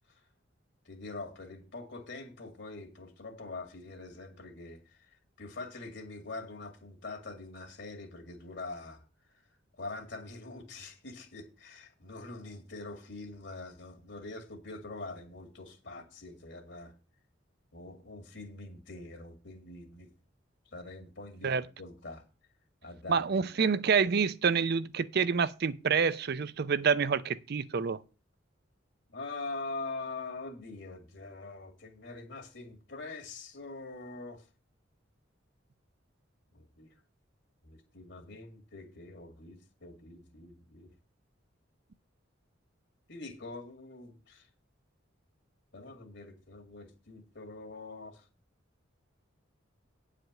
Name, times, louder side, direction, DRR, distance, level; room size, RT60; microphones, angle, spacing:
voice 1, 0.9-4.8 5.4-9.0 9.8-16.9 17.7-20.1 20.7-21.5 21.8-22.2 22.8-23.5 29.1-34.4 36.5-36.9 37.6-40.9 43.1-44.5 45.7-48.3, left 3 dB, 65° left, 2.3 m, -44 dB
voice 2, 23.1-28.0, right 5 dB, 55° right, 0.5 m, -27 dB
9.3 x 5.0 x 7.4 m
head